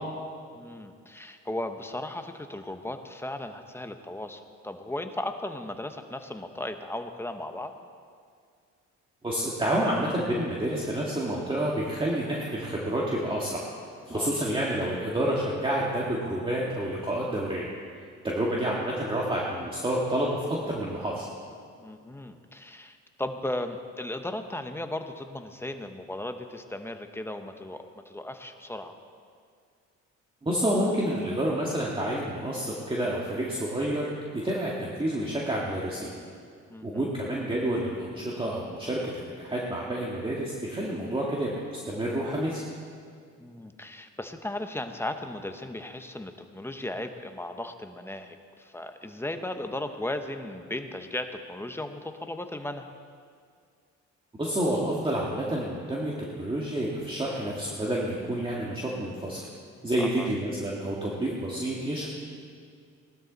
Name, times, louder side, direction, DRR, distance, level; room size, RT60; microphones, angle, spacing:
voice 1, 0.5-7.7 14.1-14.3 21.8-29.0 36.7-37.1 43.4-52.9 60.0-60.3, left 1 dB, 10° left, 7 dB, 1.0 m, -36 dB
voice 2, 9.2-13.7 14.1-17.7 18.2-21.3 30.4-34.1 34.4-36.1 36.8-39.0 39.3-42.6 54.4-59.4 59.8-62.1, right 1 dB, 15° right, -4 dB, 2.1 m, -29 dB
18.5 x 12.5 x 4.1 m, 2.2 s
cardioid pair, 90°, 30 cm